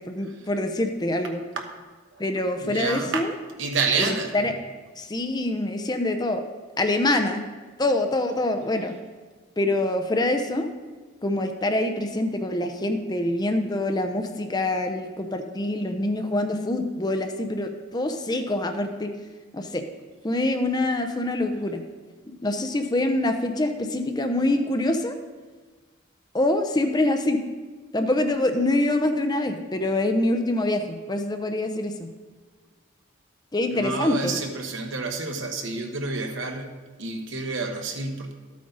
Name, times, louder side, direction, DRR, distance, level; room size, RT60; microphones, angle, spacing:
voice 1, 0.0-1.4 2.2-3.3 4.0-4.5 5.0-6.4 6.8-7.5 7.8-8.9 9.6-10.7 11.2-19.1 19.5-19.8 20.2-21.8 22.4-25.2 26.3-27.4 27.9-32.1 33.5-34.4, left 1 dB, 20° left, 6 dB, 0.6 m, -25 dB
voice 2, 2.6-3.3 3.6-4.3 33.7-36.7 37.0-38.3, right 4 dB, 70° right, 4 dB, 1.2 m, -28 dB
12.5 x 8.6 x 4.0 m, 1.4 s
head